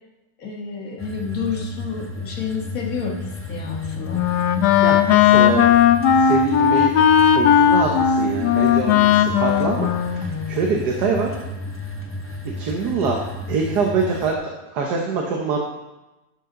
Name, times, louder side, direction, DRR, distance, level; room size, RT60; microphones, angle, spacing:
voice 1, 0.4-4.2, left 5 dB, 60° left, 0 dB, 1.8 m, -30 dB
sound 1, 1.0-14.3, left 2 dB, 15° left, 0.4 m, -33 dB
Wind instrument woodwind instrument, 3.6-10.8, left 9 dB, 85° left, 1.2 m, -17 dB
voice 2, 4.8-5.6 6.2-6.9 7.4-11.4 12.6-15.6, right 4 dB, 85° right, 1 dB, 1.6 m, -24 dB
12.0 x 7.1 x 3.8 m, 1.0 s
omnidirectional pair, 1.7 m